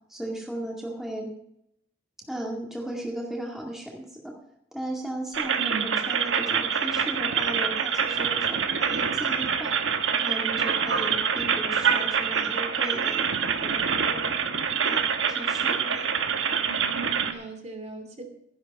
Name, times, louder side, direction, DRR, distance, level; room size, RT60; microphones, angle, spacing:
voice 1, 0.1-1.3 2.3-4.4 4.7-9.8 10.2-14.4 14.8-15.0 15.3-16.1, right 1 dB, ahead, -1 dB, 2.1 m, -36 dB
sound 1, 5.3-17.3, right 6 dB, 75° right, 1.3 m, -26 dB
voice 2, 5.6-6.0 14.3-14.6 16.7-18.4, right 4 dB, 35° right, 3 dB, 2.6 m, -38 dB
14.5 x 11.0 x 5.4 m, 0.74 s
head